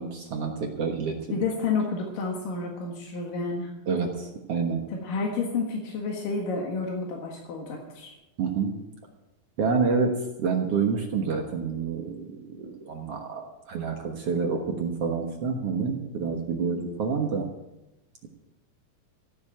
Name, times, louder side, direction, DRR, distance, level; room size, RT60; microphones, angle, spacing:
voice 1, 0.0-1.4 3.9-4.8 8.4-8.8 9.6-17.5, right 5 dB, 55° right, 2 dB, 2.0 m, -28 dB
voice 2, 1.3-3.7 4.9-8.2, left 4 dB, 85° left, 0 dB, 3.4 m, -30 dB
15.5 x 7.3 x 8.9 m, 0.96 s
omnidirectional pair, 3.8 m